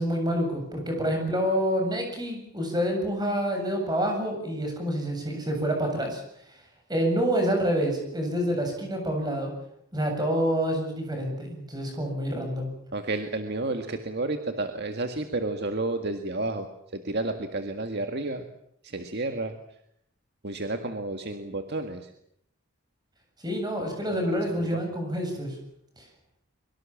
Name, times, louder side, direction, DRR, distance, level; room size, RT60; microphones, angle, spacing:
voice 1, 0.0-6.2 6.9-9.5 9.9-12.7 23.4-25.6 26.0-26.1, equal, 20° right, 3 dB, 7.8 m, -27 dB
voice 2, 12.9-18.5 18.8-19.6 20.4-22.1 24.1-24.8, right 2 dB, 50° right, 6 dB, 1.9 m, -31 dB
24.0 x 24.0 x 7.4 m, 0.73 s
head